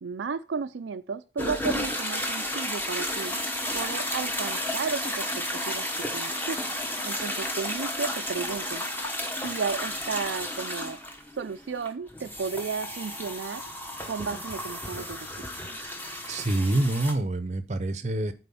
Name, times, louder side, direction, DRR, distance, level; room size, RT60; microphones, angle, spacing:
voice 1, 0.0-3.4 3.7-6.6 7.0-8.8 9.4-11.0 11.4-13.6 14.1-15.5, right 5 dB, 85° right, 0.4 m, -33 dB
sound 1, 1.4-17.1, left 1 dB, 10° left, 1.0 m, -32 dB
voice 2, 16.3-18.3, right 2 dB, 40° right, 0.7 m, -26 dB
8.4 x 4.4 x 5.5 m
head